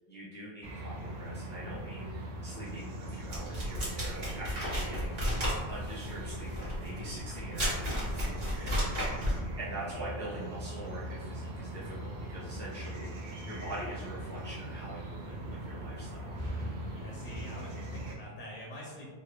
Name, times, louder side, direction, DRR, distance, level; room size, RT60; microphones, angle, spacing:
voice 1, 0.1-5.2 5.7-13.1 13.4-16.3, right 1 dB, 10° left, -9 dB, 0.6 m, -44 dB
sound 1, 0.6-18.2, right 1 dB, 75° right, 0.9 m, -40 dB
sound 2, 3.3-9.4, equal, 50° right, 1.3 m, -33 dB
voice 2, 16.9-19.1, equal, 55° left, -3 dB, 0.6 m, -45 dB
3.3 x 2.3 x 3.0 m, 1.5 s
omnidirectional pair, 1.1 m